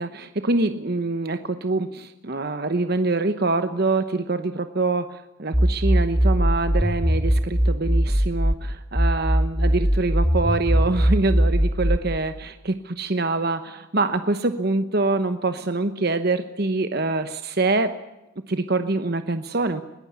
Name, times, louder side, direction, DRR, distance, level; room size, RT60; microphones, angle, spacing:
voice 1, 0.0-17.9 18.5-19.8, right 3 dB, 50° right, 10 dB, 1.0 m, -25 dB
sound 1, 5.5-8.5 8.9-12.0, equal, 20° right, 1.6 m, -20 dB
21.5 x 18.0 x 8.3 m, 0.97 s
head